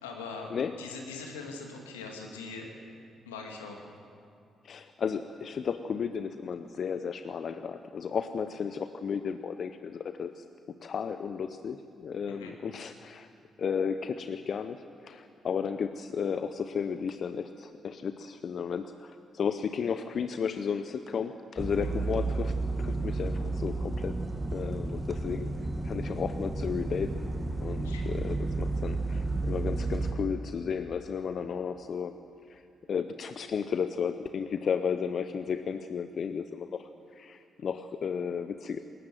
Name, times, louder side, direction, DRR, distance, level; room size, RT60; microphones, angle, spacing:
voice 1, 0.0-0.5 0.8-2.7 3.3-3.9 12.3-12.5 27.8-28.1, left 4 dB, 85° left, 2 dB, 2.4 m, -41 dB
voice 2, 4.6-13.3 13.6-24.2 24.5-27.3 27.6-32.2 32.5-32.6 32.9-38.8, left 6 dB, 55° left, 10 dB, 0.7 m, -34 dB
sound 1, 21.6-30.1, right 2 dB, 10° right, 2.3 m, -32 dB
20.5 x 19.0 x 7.8 m, 2.4 s
hypercardioid pair, 40°, 0 cm